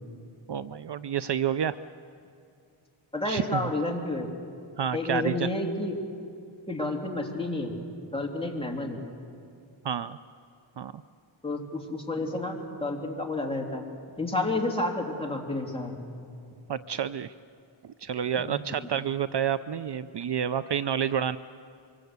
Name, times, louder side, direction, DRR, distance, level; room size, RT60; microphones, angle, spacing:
voice 1, 0.5-1.8 3.3-3.6 4.8-5.5 9.8-10.2 10.8-10.9 16.7-17.3 18.0-21.4, right 8 dB, 60° right, 13 dB, 0.6 m, -29 dB
voice 2, 3.1-4.3 4.9-6.0 6.7-7.7 8.1-9.0 11.4-13.8 14.2-16.0 18.8-18.9, left 2 dB, 10° left, 0 dB, 3.1 m, -30 dB
24.5 x 24.5 x 8.1 m, 2.4 s
wide cardioid pair, 120°, 48 cm